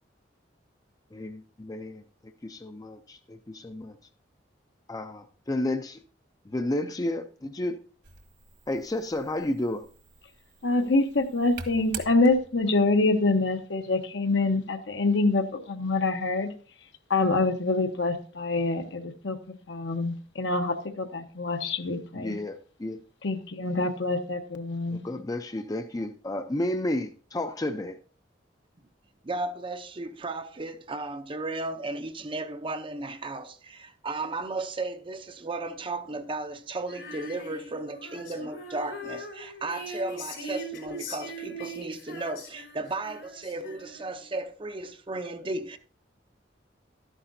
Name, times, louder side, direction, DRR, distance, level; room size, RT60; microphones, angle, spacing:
voice 1, 1.1-4.0 4.9-6.0 6.5-7.8 8.7-9.8 22.1-23.0 24.9-28.0, left 1 dB, 20° left, 0.5 m, -32 dB
sound 1, 8.0-12.7, right 6 dB, 60° right, 1.5 m, -45 dB
voice 2, 10.6-16.5 17.1-22.3 23.2-25.1, left 3 dB, 70° left, 1.0 m, -26 dB
voice 3, 29.2-45.8, right 2 dB, 25° right, 0.6 m, -35 dB
Female singing, 36.9-44.2, equal, 90° left, 3.7 m, -40 dB
12.5 x 9.9 x 2.7 m
head